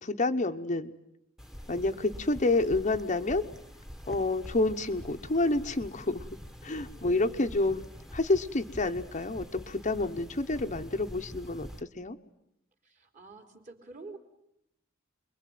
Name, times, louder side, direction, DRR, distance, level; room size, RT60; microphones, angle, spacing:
voice 1, 0.0-1.0 1.7-3.4 4.1-6.2 6.6-7.8 8.1-11.7 12.0-12.2, left 2 dB, 35° left, 6 dB, 1.0 m, -28 dB
sound 1, 1.4-11.8, equal, ahead, 1.4 m, -46 dB
voice 2, 1.8-2.5 6.7-7.8 12.8-14.2, right 2 dB, 40° right, 7 dB, 3.7 m, -50 dB
28.0 x 22.5 x 9.3 m, 0.80 s
head